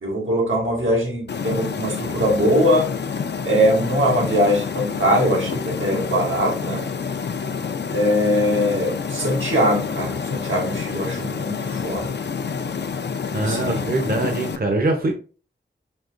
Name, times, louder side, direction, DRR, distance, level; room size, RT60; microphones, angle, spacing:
voice 1, 0.0-2.9 3.4-6.9 7.9-12.2 13.4-13.8, equal, 85° right, 1.2 m, -21 dB
sound 1, 1.3-14.6, left 6 dB, 60° left, 0.4 m, -28 dB
voice 2, 13.3-15.2, right 2 dB, 50° right, 0.7 m, -23 dB
5.3 x 2.8 x 2.4 m
wide cardioid pair, 60°, 20 cm